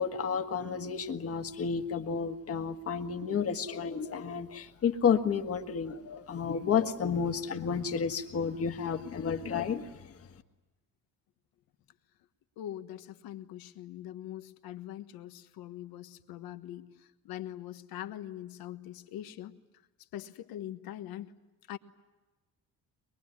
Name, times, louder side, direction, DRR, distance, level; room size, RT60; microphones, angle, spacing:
voice 1, 0.0-9.9, left 6 dB, 45° left, 6 dB, 1.6 m, -31 dB
voice 2, 12.6-16.9 17.2-19.5 20.1-21.3 21.7-21.8, left 12 dB, 90° left, 9 dB, 1.4 m, -42 dB
23.5 x 22.0 x 9.8 m, 1.1 s
cardioid pair, 150°, 35 cm